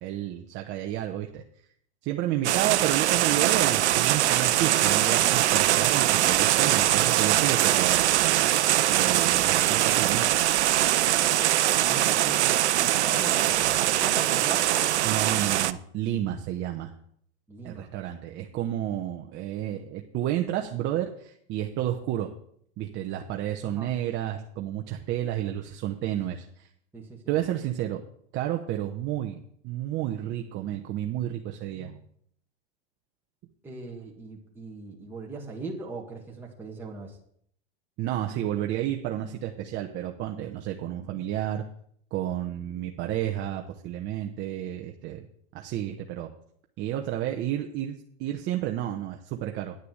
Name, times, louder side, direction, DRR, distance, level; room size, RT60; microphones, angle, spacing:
voice 1, 0.0-1.4 2.0-8.5 8.9-10.4 15.0-16.9 17.6-22.3 22.8-26.7 27.3-28.0 28.3-32.0 38.0-41.6 42.1-45.3 45.5-46.3 46.8-49.7, right 12 dB, 35° right, 3 dB, 0.9 m, -31 dB
sound 1, 2.4-15.7, right 13 dB, 85° right, 0.7 m, -22 dB
voice 2, 11.7-14.7 17.5-17.9 23.6-23.9 26.9-27.2 33.6-37.2, right 3 dB, 5° right, -3 dB, 1.8 m, -39 dB
9.7 x 6.8 x 7.8 m, 0.65 s
supercardioid pair, 135°, 33 cm